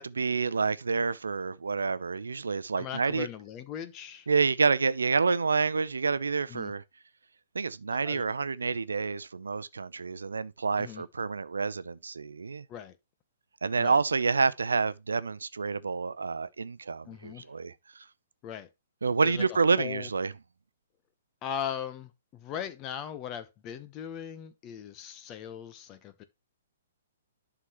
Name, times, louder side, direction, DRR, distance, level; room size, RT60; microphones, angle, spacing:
voice 1, 0.0-3.3 4.3-6.8 7.5-12.6 13.6-17.7 19.0-20.3, right 4 dB, 75° right, 0.7 m, -28 dB
voice 2, 2.8-4.3 6.5-6.7 7.9-8.2 10.8-11.0 12.7-13.0 13.8-14.0 17.0-17.5 18.4-18.7 19.2-20.1 21.4-26.2, left 9 dB, 30° left, 1.1 m, -39 dB
11.5 x 6.0 x 3.1 m
figure-of-eight pair, 120°, 0 cm